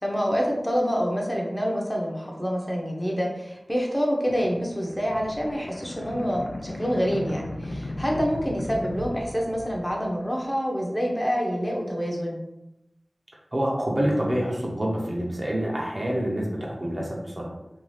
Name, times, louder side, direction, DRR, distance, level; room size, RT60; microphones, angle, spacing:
voice 1, 0.0-12.4, equal, 15° left, -1 dB, 0.6 m, -27 dB
sound 1, 4.3-10.1, left 1 dB, 80° left, 0.3 m, -37 dB
voice 2, 13.5-17.5, equal, 45° right, -2 dB, 0.7 m, -27 dB
2.6 x 2.3 x 3.1 m, 0.91 s
wide cardioid pair, 45°, 0 cm